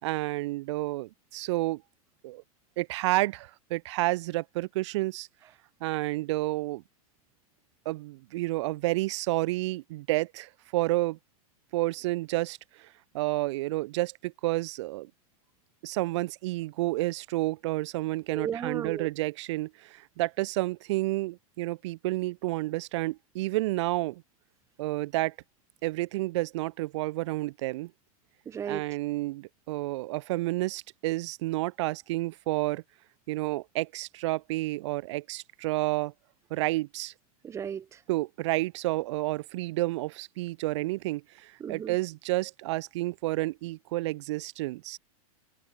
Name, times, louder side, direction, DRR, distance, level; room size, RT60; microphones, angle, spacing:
voice 1, 0.0-1.8 2.2-2.4 2.8-5.3 5.8-6.8 7.9-11.2 11.7-12.9 13.1-15.1 15.8-24.2 24.8-25.3 25.8-27.9 28.6-32.8 33.3-36.1 36.5-37.1 38.1-45.0, right 19 dB, 50° right, 3.6 m, -30 dB
voice 2, 18.3-19.1 28.5-28.9 37.4-38.0 41.6-41.9, right 8 dB, 15° right, 1.8 m, -35 dB
open air
supercardioid pair, 160°, 19 cm